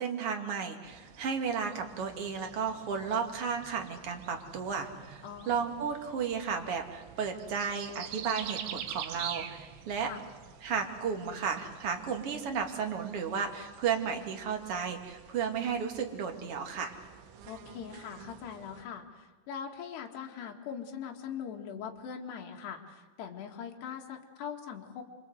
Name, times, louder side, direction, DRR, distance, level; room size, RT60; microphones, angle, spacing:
voice 1, 0.0-10.1 10.6-16.9, right 6 dB, 40° right, 4 dB, 2.3 m, -33 dB
sound 1, 0.8-18.8, right 9 dB, 90° right, 3.9 m, -47 dB
voice 2, 5.2-5.6 10.0-10.2 17.5-25.0, left 7 dB, 70° left, 1 dB, 4.0 m, -41 dB
27.0 x 24.5 x 8.0 m, 1.4 s
omnidirectional pair, 5.2 m